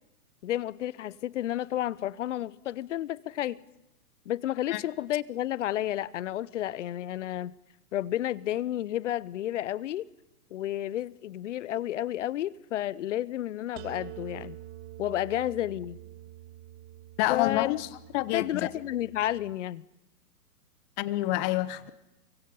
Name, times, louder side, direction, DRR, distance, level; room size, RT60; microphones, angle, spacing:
voice 1, 0.4-3.6 4.3-7.5 7.9-10.1 10.5-14.6 15.0-16.0 17.3-17.7 18.3-19.8, left 13 dB, 50° left, 0.8 m, -31 dB
sound 1, 13.8-19.6, right 15 dB, 30° right, 0.8 m, -46 dB
voice 2, 17.2-17.9 18.1-18.7 21.0-21.9, left 17 dB, 30° left, 1.1 m, -28 dB
29.0 x 24.0 x 5.6 m
hypercardioid pair, 130°, 47 cm